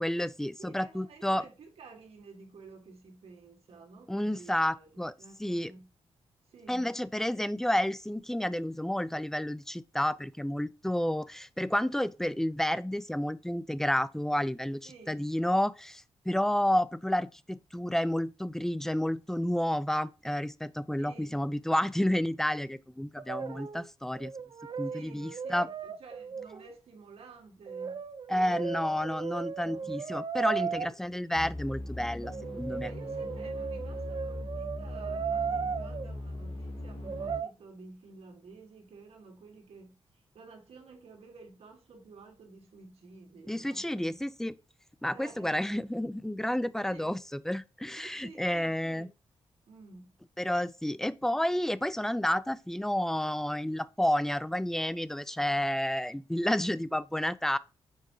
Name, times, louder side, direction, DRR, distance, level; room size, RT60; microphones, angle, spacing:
voice 1, 0.0-1.4 4.1-5.1 5.4-5.7 6.7-24.3 24.8-25.7 28.3-32.9 43.5-44.5 45.0-49.1 50.4-57.6, left 1 dB, 5° left, 0.4 m, -30 dB
voice 2, 0.6-5.9 6.5-6.9 14.8-15.3 21.0-21.3 24.9-29.0 29.6-29.9 30.6-30.9 32.7-44.3 45.1-45.9 46.4-46.5 46.9-47.1 48.0-49.1 49.7-50.2, right 4 dB, 75° right, 1.9 m, -52 dB
Brass instrument, 23.2-23.9 24.1-26.7 27.7-30.9 32.2-36.1 37.0-37.5, right 6 dB, 50° right, 0.5 m, -36 dB
sound 1, 31.3-37.4, left 1 dB, 65° left, 2.2 m, -40 dB
6.9 x 4.6 x 3.0 m
cardioid pair, 95°, 10 cm